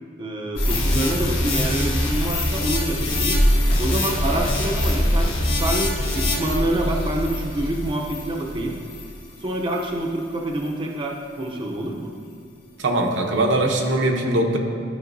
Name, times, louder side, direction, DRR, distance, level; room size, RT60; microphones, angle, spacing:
voice 1, 0.2-3.5 3.8-8.8 9.4-12.1, right 1 dB, 25° right, 0 dB, 0.6 m, -27 dB
sound 1, 0.6-9.2 9.7-9.9, left 1 dB, 85° left, 1.4 m, -23 dB
voice 2, 12.8-14.6, right 1 dB, 75° right, 2 dB, 0.8 m, -21 dB
12.0 x 5.3 x 2.6 m, 2.4 s
head